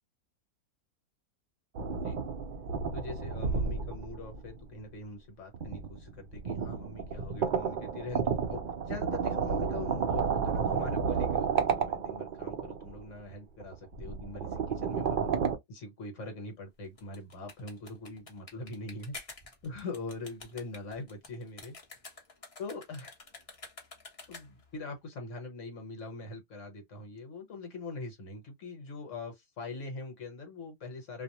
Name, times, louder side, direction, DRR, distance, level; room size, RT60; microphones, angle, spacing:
sound 1, 1.7-4.8 5.5-13.0 13.6-15.6, right 6 dB, 70° right, 0.4 m, -32 dB
voice 1, 1.9-2.2 2.9-15.3 15.7-19.1 19.6-21.7 22.6-23.1 24.3-31.2, left 3 dB, 60° left, 1.3 m, -42 dB
sound 2, 16.8-24.7, left 3 dB, 30° left, 0.7 m, -49 dB
2.6 x 2.0 x 2.8 m
omnidirectional pair, 1.6 m